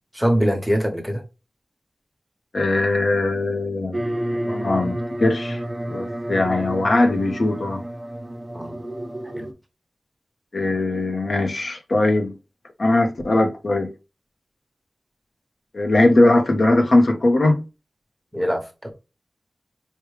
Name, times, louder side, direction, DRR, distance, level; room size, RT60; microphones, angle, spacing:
voice 1, 0.1-1.2 8.5-8.8 9.2-9.5 18.3-18.9, equal, 5° right, 1.1 m, -23 dB
voice 2, 2.5-4.0 4.5-5.6 5.9-7.8 10.5-12.3 12.8-13.9 15.7-17.6, left 2 dB, 65° left, 0.8 m, -20 dB
sound 1, 3.9-9.5, right 1 dB, 20° right, 0.6 m, -30 dB
4.8 x 2.2 x 3.2 m
wide cardioid pair, 90°, 0 cm